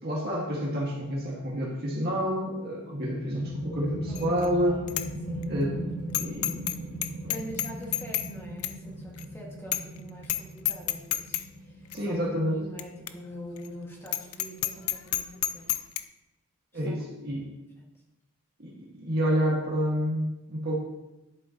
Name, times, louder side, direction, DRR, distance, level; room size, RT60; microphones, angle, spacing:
voice 1, 0.0-4.7 5.5-5.8 6.1-7.3 11.9-12.6 16.7-17.5 18.6-20.9, equal, 45° right, -4 dB, 2.0 m, -29 dB
sound 1, 3.1-14.3, right 1 dB, 50° left, 2.2 m, -39 dB
voice 2, 4.1-4.9 5.2-5.6 7.3-15.8 16.7-17.0 17.3-17.4 17.8-17.9, equal, 10° left, -3 dB, 1.9 m, -44 dB
Bicycle bell, 4.2-4.5 4.9-5.1 5.4-5.5 6.1-6.8 7.0-8.3 8.6-8.8 9.2-9.3 9.7-10.0 10.2-10.4 10.7-11.4 11.9-12.0 12.8-12.9 13.1-13.2 13.6-13.7 14.1-16.0, left 13 dB, 85° left, 0.5 m, -29 dB
11.0 x 8.0 x 3.0 m, 0.97 s
head